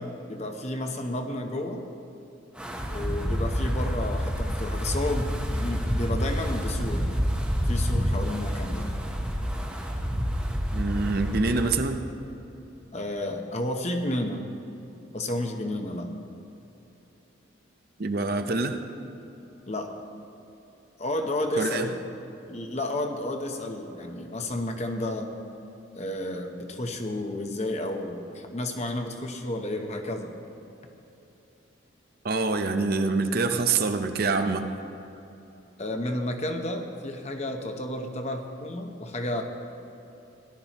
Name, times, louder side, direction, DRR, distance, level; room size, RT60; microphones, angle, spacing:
voice 1, 0.0-1.8 2.9-7.1 7.7-8.9 12.9-14.4 15.1-16.1 19.7-19.9 21.0-22.0 22.5-25.3 26.0-30.3 35.8-39.4, left 1 dB, 35° left, 4 dB, 0.8 m, -31 dB
Wind, 2.6-11.7, equal, 5° right, 0.8 m, -28 dB
voice 2, 10.7-12.0 18.0-18.8 21.6-21.9 32.2-34.7, right 3 dB, 50° right, 7 dB, 0.6 m, -25 dB
17.5 x 11.5 x 3.0 m, 2.9 s
head